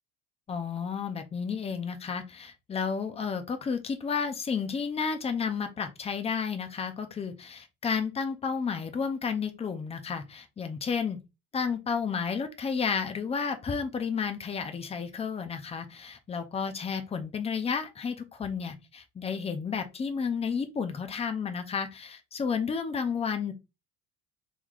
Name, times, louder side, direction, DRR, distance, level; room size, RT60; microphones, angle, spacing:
voice 1, 0.5-11.2 11.5-23.5, left 6 dB, 15° left, 0.4 m, -32 dB
3.6 x 3.1 x 2.3 m
cardioid pair, 135°, 41 cm